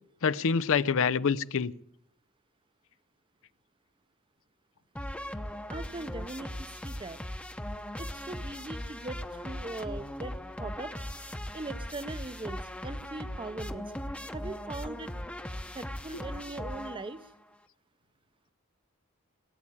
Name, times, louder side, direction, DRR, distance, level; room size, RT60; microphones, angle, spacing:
voice 1, 0.2-1.7, left 6 dB, 65° left, 0.6 m, -26 dB
sound 1, 5.0-17.4, left 1 dB, 5° left, 0.8 m, -39 dB
voice 2, 5.7-7.2 8.0-10.3 10.6-10.9 11.5-13.9 14.3-15.1 15.7-17.2, right 2 dB, 25° right, 0.7 m, -40 dB
19.0 x 8.6 x 8.5 m
head